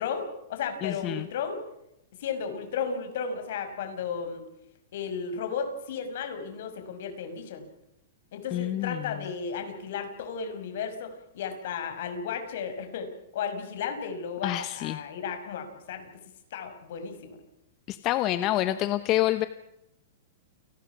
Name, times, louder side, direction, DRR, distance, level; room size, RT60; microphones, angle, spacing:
voice 1, 0.0-1.6 2.2-4.4 4.9-7.7 8.3-16.1 16.5-17.3, left 6 dB, 55° left, 7 dB, 5.7 m, -34 dB
voice 2, 0.8-1.3 8.5-9.2 14.4-15.0 17.9-19.5, left 14 dB, 25° left, 11 dB, 0.9 m, -27 dB
29.0 x 19.5 x 6.1 m, 0.85 s
supercardioid pair, 165°, 0 cm